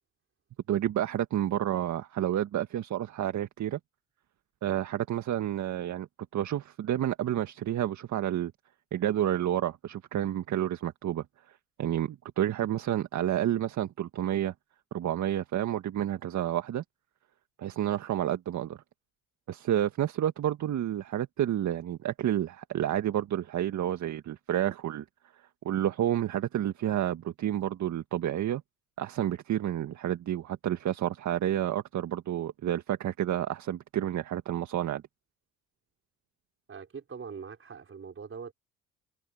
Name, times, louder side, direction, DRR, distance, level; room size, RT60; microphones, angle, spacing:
voice 1, 0.7-3.8 4.6-6.1 6.3-8.5 8.9-11.2 11.8-14.5 14.9-16.8 17.6-18.8 19.5-25.0 25.6-28.6 29.0-35.0, right 11 dB, 55° right, 1.8 m, -30 dB
voice 2, 36.7-38.5, right 6 dB, 40° right, 5.3 m, -42 dB
supercardioid pair, 65°, 34 cm